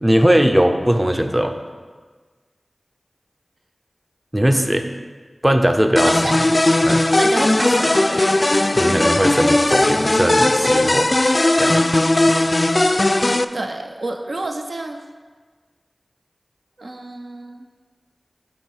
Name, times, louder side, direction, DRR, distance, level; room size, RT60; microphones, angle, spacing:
voice 1, 0.0-1.5 4.3-4.9 5.4-6.4 6.8-7.0 8.7-11.1 11.6-11.8, equal, 20° right, 6 dB, 0.6 m, -19 dB
voice 2, 4.6-5.0 6.0-6.3 6.7-6.8 7.2-8.2 13.5-15.0 16.8-17.6, right 2 dB, 75° right, 4 dB, 0.5 m, -29 dB
sound 1, 6.0-13.5, left 1 dB, 40° left, 0.3 m, -17 dB
10.5 x 3.8 x 4.7 m, 1.4 s
wide cardioid pair, 40°, 0 cm